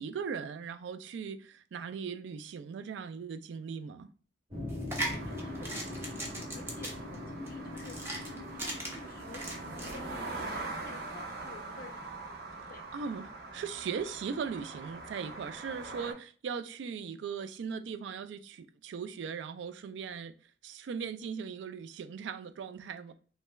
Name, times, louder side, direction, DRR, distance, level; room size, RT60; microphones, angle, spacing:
voice 1, 0.0-4.1 12.9-20.3 20.6-23.1, right 6 dB, 75° right, 0.3 m, -39 dB
sound 1, 4.5-10.8, left 2 dB, 30° right, 0.9 m, -43 dB
sound 2, 4.7-10.0, right 1 dB, 15° right, 0.6 m, -39 dB
voice 2, 4.9-12.1 12.7-12.8, left 3 dB, 50° left, 0.5 m, -51 dB
sound 3, 5.0-16.1, right 2 dB, 60° right, 0.7 m, -43 dB
3.2 x 3.1 x 2.2 m
head